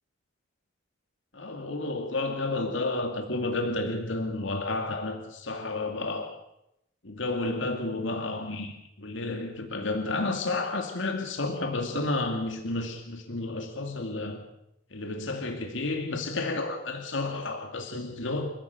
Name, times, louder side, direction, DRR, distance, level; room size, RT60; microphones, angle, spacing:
voice 1, 1.3-6.3 7.0-14.4 14.9-18.5, left 2 dB, 65° left, 4 dB, 2.5 m, -31 dB
30.0 x 15.0 x 6.9 m, 0.81 s
head